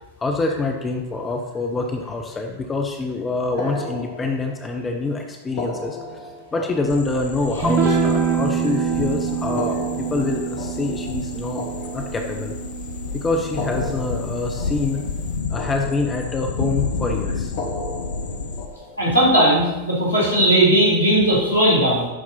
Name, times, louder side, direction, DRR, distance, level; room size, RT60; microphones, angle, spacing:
voice 1, 0.2-6.0 6.5-11.6 11.9-12.5 13.1-15.0 15.5-17.5, left 3 dB, 15° left, 2 dB, 0.9 m, -25 dB
sound 1, 3.6-4.8 5.5-8.8 9.4-12.7 13.4-15.3 15.6-16.6 17.4-19.3, left 2 dB, 45° left, 1.4 m, -35 dB
sound 2, 6.9-18.7, left 4 dB, 65° left, 0.7 m, -31 dB
sound 3, 7.6-14.2, right 6 dB, 25° right, 0.8 m, -25 dB
voice 2, 19.0-22.1, right 1 dB, 80° left, -5 dB, 3.1 m, -17 dB
11.5 x 4.6 x 4.3 m, 1.0 s
figure-of-eight pair, 90°, 0 cm